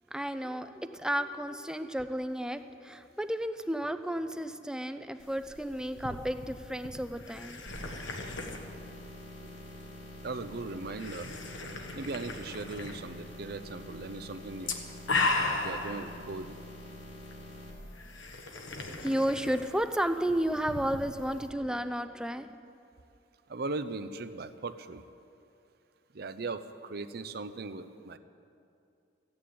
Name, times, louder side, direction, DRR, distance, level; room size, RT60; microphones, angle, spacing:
voice 1, 0.1-7.6 18.9-22.5, equal, 5° right, 10 dB, 0.5 m, -32 dB
sound 1, 5.2-21.5, left 3 dB, 85° left, 1.4 m, -38 dB
sound 2, 7.7-17.7, equal, 65° left, 3.2 m, -46 dB
voice 2, 10.2-11.3 11.9-14.7 15.4-16.5 23.5-25.0 26.1-28.2, right 3 dB, 55° right, 10 dB, 0.6 m, -38 dB
14.5 x 9.6 x 8.6 m, 2.6 s
head